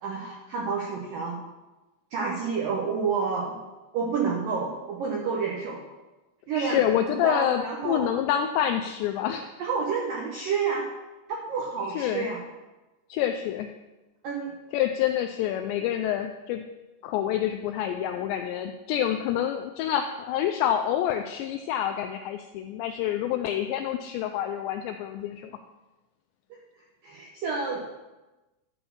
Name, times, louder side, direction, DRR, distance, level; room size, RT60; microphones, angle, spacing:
voice 1, 0.0-1.4 2.1-3.6 3.9-5.8 6.5-6.8 7.2-8.1 9.6-10.9 11.3-12.4 14.2-14.5 27.0-27.8, right 5 dB, 80° right, -1 dB, 2.0 m, -29 dB
voice 2, 6.5-9.5 11.9-12.3 13.1-13.7 14.7-16.7 17.0-25.5, left 10 dB, 85° left, 5 dB, 2.5 m, -27 dB
11.5 x 4.3 x 6.9 m, 1.1 s
omnidirectional pair, 5.5 m